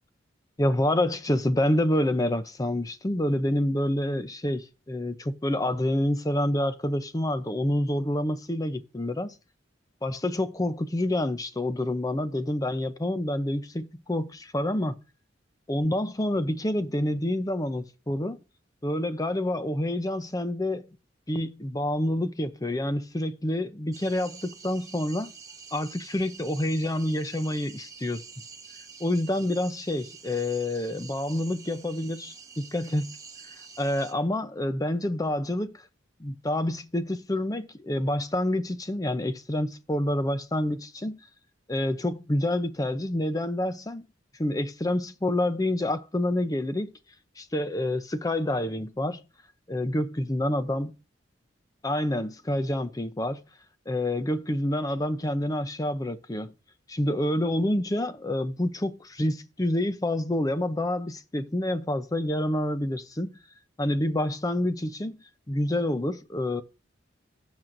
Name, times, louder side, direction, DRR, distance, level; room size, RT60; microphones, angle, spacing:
voice 1, 0.6-9.4 10.0-15.0 15.7-18.4 18.8-21.0 21.3-25.3 25.7-28.2 29.0-33.1 33.8-35.8 36.2-41.2 41.7-44.1 44.4-46.9 47.4-49.2 49.7-50.9 51.8-53.4 53.9-56.5 56.9-63.3 63.8-66.6, left 1 dB, 20° left, 0.6 m, -28 dB
sound 1, 23.9-34.1, right 5 dB, 20° right, 0.9 m, -47 dB
16.0 x 6.1 x 2.6 m
head